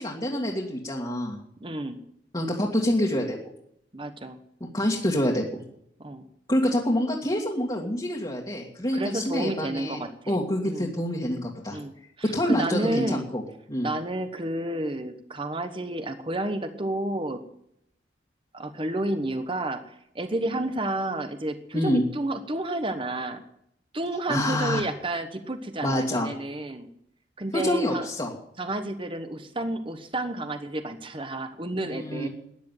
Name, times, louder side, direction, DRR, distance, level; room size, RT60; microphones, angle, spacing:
voice 1, 0.0-1.4 2.3-3.4 4.7-5.6 6.5-10.0 10.3-11.8 12.3-13.4 13.7-13.9 21.7-22.1 24.3-24.8 25.8-26.3 27.5-28.3 31.8-32.3, left 1 dB, 25° left, -3 dB, 2.1 m, -26 dB
voice 2, 1.6-2.0 3.9-4.4 6.0-6.2 8.9-10.4 10.6-10.9 11.7-11.9 12.2-13.3 13.8-17.4 18.5-23.4 23.9-26.9 27.4-28.1 28.6-32.3, right 1 dB, 30° right, 9 dB, 1.1 m, -31 dB
13.5 x 10.5 x 9.2 m, 0.75 s
head